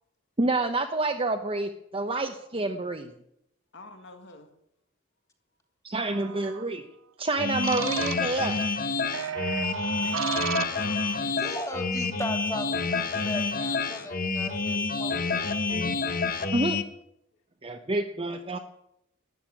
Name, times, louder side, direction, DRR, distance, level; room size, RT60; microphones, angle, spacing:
voice 1, 0.4-3.1 5.8-6.8 7.2-8.7 16.5-16.8 17.6-18.6, right 2 dB, 25° right, 4 dB, 0.9 m, -28 dB
voice 2, 3.7-4.5 9.9-11.4, left 2 dB, 60° left, 5 dB, 1.9 m, -46 dB
sound 1, 6.1-6.6 7.6-8.6 9.1-11.2, right 8 dB, 70° right, 0.6 m, -34 dB
sound 2, 7.4-16.8, left 4 dB, 45° left, 1.3 m, -28 dB
voice 3, 11.2-15.9, left 1 dB, 15° left, 4 dB, 2.6 m, -38 dB
13.0 x 9.6 x 9.8 m, 0.78 s
head